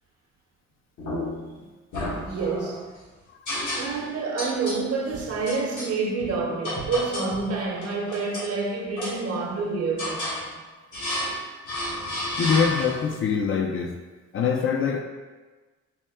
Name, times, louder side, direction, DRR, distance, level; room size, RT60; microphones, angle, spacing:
sound 1, 1.0-1.5 1.9-2.8 3.5-4.1 4.4-4.8 5.5-5.9 6.6-7.4 7.8-8.5 9.0-9.6 10.0-10.4 10.9-11.4 11.7-13.1, left 1 dB, 75° left, 1.5 m, -31 dB
voice 1, 2.2-2.9 3.7-10.6, right 4 dB, 55° right, 0.8 m, -28 dB
voice 2, 3.5-3.8 12.4-14.0 14.3-15.0, left 6 dB, 45° left, 0.5 m, -24 dB
4.3 x 2.1 x 3.5 m
cardioid pair, 90°, 30 cm